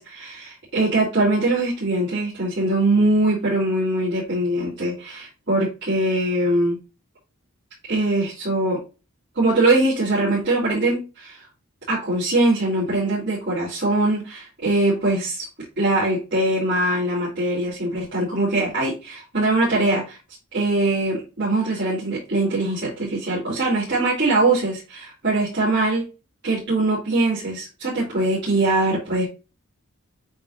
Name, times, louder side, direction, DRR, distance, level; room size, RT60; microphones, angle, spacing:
voice 1, 0.0-6.8 7.9-8.8 9.3-11.4 11.9-15.5 15.8-20.2 20.5-26.0 26.4-29.3, right 2 dB, 50° right, -10 dB, 3.8 m, -22 dB
8.7 x 4.1 x 2.7 m, 0.30 s
head